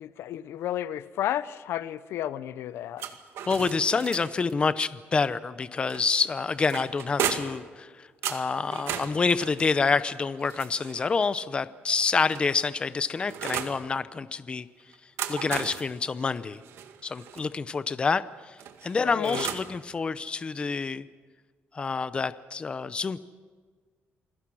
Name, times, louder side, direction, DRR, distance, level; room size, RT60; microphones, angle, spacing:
voice 1, 0.0-3.1 19.0-19.5, left 12 dB, 85° left, 16 dB, 0.8 m, -32 dB
sound 1, 3.0-4.5 5.9-7.7 8.2-11.2 12.0-13.8 14.9-17.5 18.6-19.8, right 9 dB, 85° right, 2.0 m, -36 dB
voice 2, 3.5-14.7 15.3-16.6 17.0-18.6 18.8-21.1 21.7-23.2, left 4 dB, 25° left, 15 dB, 0.7 m, -27 dB
28.5 x 21.0 x 6.2 m, 1.5 s
cardioid pair, 155°, 4 cm